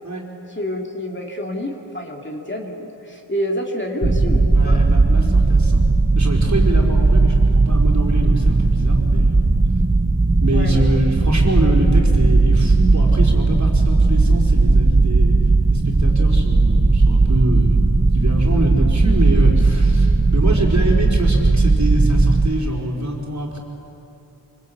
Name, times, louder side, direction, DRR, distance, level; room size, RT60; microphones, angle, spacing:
voice 1, 0.5-4.8 10.5-10.9, equal, 25° left, 0 dB, 2.7 m, -28 dB
sound 1, 4.0-22.5, right 3 dB, 20° right, 1.1 m, -16 dB
voice 2, 4.5-5.8 6.2-9.5 10.4-15.4 15.7-17.9 18.1-23.6, right 1 dB, 35° right, -1 dB, 4.7 m, -24 dB
25.0 x 24.5 x 8.6 m, 3.0 s
wide cardioid pair, 80°, 48 cm